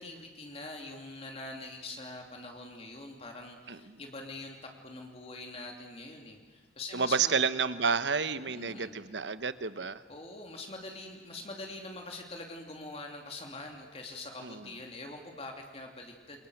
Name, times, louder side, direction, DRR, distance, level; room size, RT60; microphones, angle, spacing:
voice 1, 0.0-7.5 8.3-9.0 10.1-16.5, left 2 dB, 35° left, 2 dB, 2.9 m, -44 dB
voice 2, 3.7-4.0 6.9-10.0 14.4-14.7, right 5 dB, 80° right, 13 dB, 1.1 m, -30 dB
29.0 x 23.0 x 8.0 m, 1.3 s
head